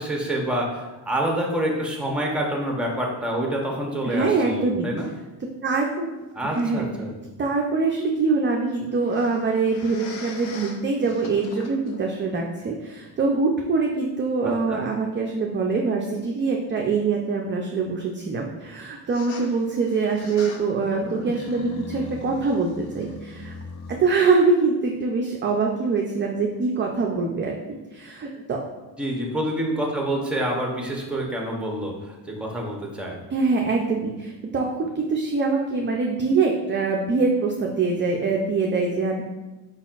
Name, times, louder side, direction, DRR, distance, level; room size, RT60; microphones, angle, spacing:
voice 1, 0.0-5.1 6.3-7.1 14.4-14.8 29.0-33.2, right 1 dB, ahead, 0 dB, 0.8 m, -27 dB
voice 2, 4.0-4.9 5.6-6.1 6.4-6.8 7.4-23.5 23.9-28.6 33.3-39.2, right 4 dB, 25° right, 0 dB, 0.4 m, -24 dB
sound 1, 5.0-5.2 6.5-6.6 9.0-12.1 12.8-12.9 15.7-15.8 19.1-24.0, left 2 dB, 85° left, 0.7 m, -39 dB
4.6 x 4.1 x 2.4 m, 1.1 s
cardioid pair, 105°, 48 cm